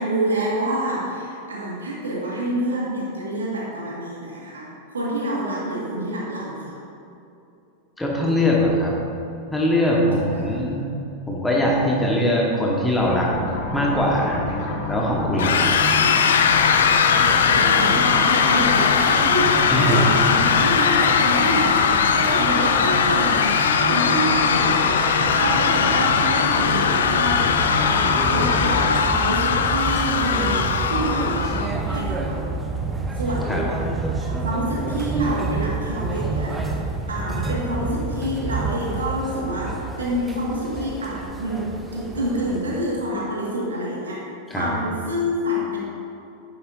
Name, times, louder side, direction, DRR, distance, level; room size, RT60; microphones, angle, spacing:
voice 1, 0.0-6.8 10.3-10.6 17.5-24.9 25.3-27.5 27.9-32.5 33.2-33.6 34.2-36.6 37.1-45.8, right 1 dB, 70° right, -4 dB, 1.9 m, -27 dB
voice 2, 8.0-9.0 9.5-10.8 11.3-13.3 13.7-14.4 14.9-15.7 19.7-20.1 33.5-33.7 44.5-44.8, left 1 dB, 5° left, -3 dB, 1.5 m, -21 dB
sound 1, 13.0-29.0, left 2 dB, 45° left, 1.3 m, -28 dB
sound 2, 15.4-31.7, left 6 dB, 65° left, 0.4 m, -20 dB
sound 3, 23.9-43.1, right 3 dB, 10° right, 0.8 m, -29 dB
10.5 x 8.6 x 2.7 m, 2.7 s
figure-of-eight pair, 90°, 0 cm